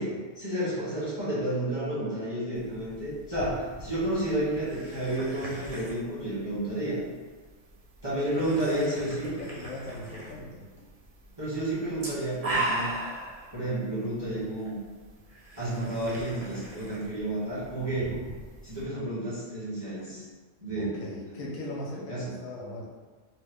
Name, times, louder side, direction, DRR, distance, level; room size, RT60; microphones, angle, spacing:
voice 1, 0.4-7.0 8.0-9.3 11.4-12.9 13.5-14.8 15.6-18.1 18.6-20.2 20.6-21.0 21.3-21.5 22.1-22.3, right 1 dB, 20° right, -10 dB, 0.9 m, -31 dB
sound 1, 2.5-18.8, right 2 dB, 45° right, 0.5 m, -40 dB
voice 2, 8.5-10.7 20.8-22.9, left 2 dB, 90° left, -3 dB, 1.1 m, -39 dB
3.0 x 2.1 x 3.4 m, 1.4 s
omnidirectional pair, 1.4 m